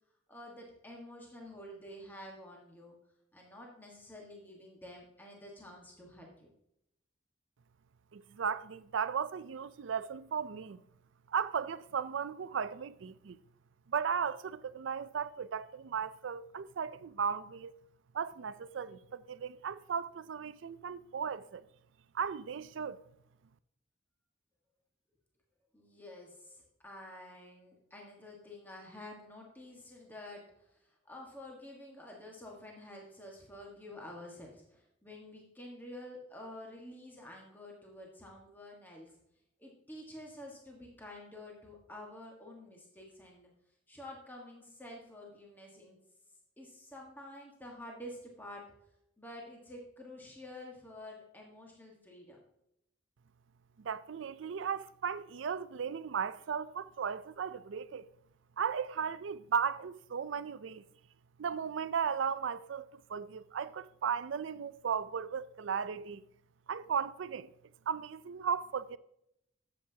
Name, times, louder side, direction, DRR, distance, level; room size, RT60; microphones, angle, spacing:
voice 1, 0.3-3.0 3.3-6.5 25.7-39.1 39.6-43.5 43.9-46.0 46.6-48.6 49.2-52.4, left 1 dB, 10° left, 1.4 m, -49 dB
voice 2, 8.1-10.8 11.3-13.4 13.9-17.7 18.1-21.6 22.1-23.0 53.8-58.0 58.6-60.8 61.4-66.2 66.7-67.5 67.9-69.0, right 7 dB, 85° right, 0.4 m, -36 dB
12.0 x 7.8 x 2.8 m
head